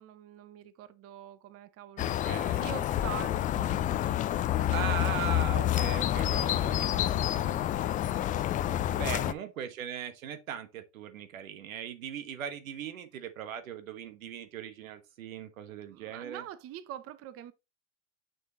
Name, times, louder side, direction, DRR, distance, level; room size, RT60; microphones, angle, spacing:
voice 1, 0.0-2.3 2.6-5.3 5.8-6.4 8.9-9.3 15.9-17.5, right 11 dB, 35° right, 0.8 m, -45 dB
sound 1, 2.0-9.3, left 12 dB, 20° left, 0.3 m, -28 dB
voice 2, 2.0-2.6 4.7-8.3 8.9-16.4, right 8 dB, 80° right, 1.3 m, -39 dB
7.3 x 6.2 x 2.9 m
hypercardioid pair, 95°, 40 cm